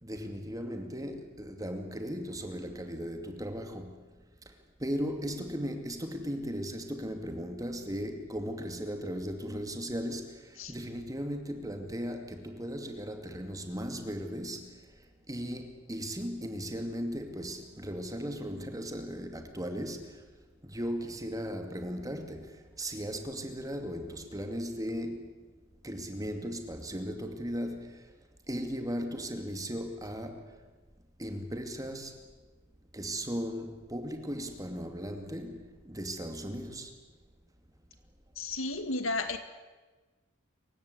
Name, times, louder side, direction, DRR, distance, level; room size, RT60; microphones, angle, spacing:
voice 1, 0.0-4.0 4.8-14.7 15.3-20.2 20.6-25.3 25.8-28.0 28.5-30.5 31.2-32.2 32.9-36.9, equal, 15° right, 2.4 m, -37 dB
voice 2, 38.4-39.4, left 3 dB, 65° left, 2.2 m, -33 dB
27.5 x 16.5 x 8.3 m
head